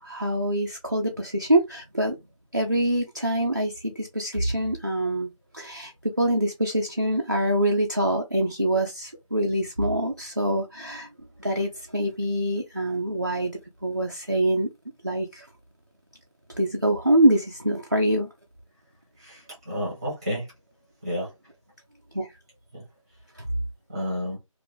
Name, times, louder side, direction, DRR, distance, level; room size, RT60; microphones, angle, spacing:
voice 1, 0.0-2.2 2.5-11.1 11.4-13.5 13.8-14.7 15.0-15.5 16.5-18.3 22.1-22.3 23.4-23.5, right 1 dB, 35° right, 0.4 m, -25 dB
voice 2, 19.2-20.5 21.0-21.3 22.7-22.8 23.9-24.4, equal, 10° right, 0.8 m, -31 dB
2.6 x 2.5 x 3.5 m
figure-of-eight pair, 170°, 18 cm